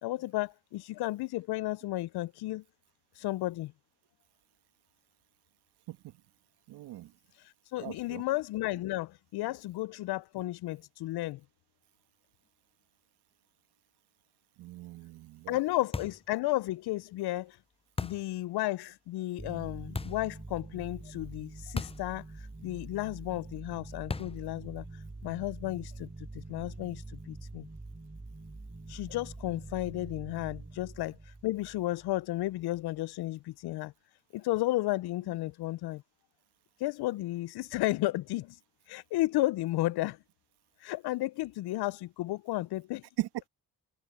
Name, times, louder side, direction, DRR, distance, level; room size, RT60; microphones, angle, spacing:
voice 1, 0.0-2.6 3.2-3.7 7.7-11.4 15.5-17.6 18.0-22.2 22.6-24.8 25.2-27.7 28.9-31.2 31.4-33.9 34.3-36.0 36.8-38.6 38.9-40.2 40.8-43.0, left 17 dB, 70° left, 0.7 m, -33 dB
voice 2, 6.7-7.1 7.8-8.2 14.6-15.6 43.2-43.5, right 15 dB, 75° right, 2.3 m, -38 dB
sound 1, 15.9-16.3 18.0-18.3 19.9-20.3 21.8-22.1 22.4-22.5 24.1-24.5, left 4 dB, 15° left, 0.6 m, -36 dB
sound 2, 19.4-32.5, right 2 dB, 20° right, 7.6 m, -45 dB
hypercardioid pair, 50°, 40 cm